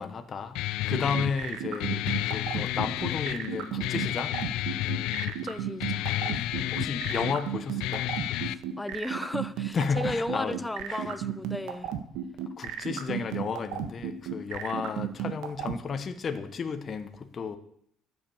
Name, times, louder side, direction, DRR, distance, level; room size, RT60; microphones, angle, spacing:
voice 1, 0.0-4.4 6.7-8.1 9.7-10.6 10.9-11.2 12.6-17.6, left 5 dB, 30° left, 7 dB, 1.0 m, -33 dB
Guitar, 0.5-8.5, left 15 dB, 85° left, 0.5 m, -31 dB
sound 1, 0.9-15.8, right 11 dB, 85° right, 1.6 m, -33 dB
voice 2, 5.2-6.7 8.5-11.9, left 1 dB, 5° left, 13 dB, 0.5 m, -35 dB
13.5 x 8.0 x 7.1 m, 0.67 s
cardioid pair, 170°, 0 cm